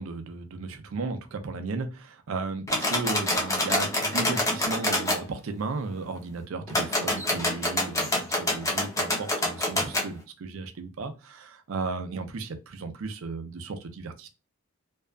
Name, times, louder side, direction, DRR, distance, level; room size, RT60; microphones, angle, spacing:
voice 1, 0.0-14.3, right 4 dB, 75° right, 0.4 m, -35 dB
sound 1, 2.7-5.2 6.7-10.1, left 1 dB, 15° left, 0.5 m, -27 dB
2.6 x 2.3 x 2.2 m
head